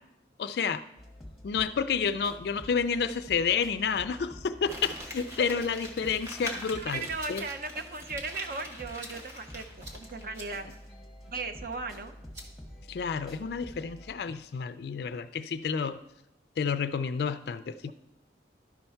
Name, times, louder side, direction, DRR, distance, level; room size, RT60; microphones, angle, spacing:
voice 1, 0.4-0.8 1.4-7.4 12.9-16.0 16.6-17.9, left 6 dB, 60° left, 12 dB, 0.3 m, -30 dB
sound 1, 1.0-14.1, left 1 dB, ahead, 1.2 m, -49 dB
Crumpling crinkling, 4.6-10.4 10.7-10.8, left 1 dB, 15° right, 1.4 m, -43 dB
voice 2, 6.7-10.7 11.3-12.2 17.9-18.0, right 3 dB, 50° right, 7 dB, 0.7 m, -37 dB
sound 2, 6.9-13.5, equal, 80° right, 1.7 m, -54 dB
12.0 x 4.4 x 5.6 m, 0.87 s
head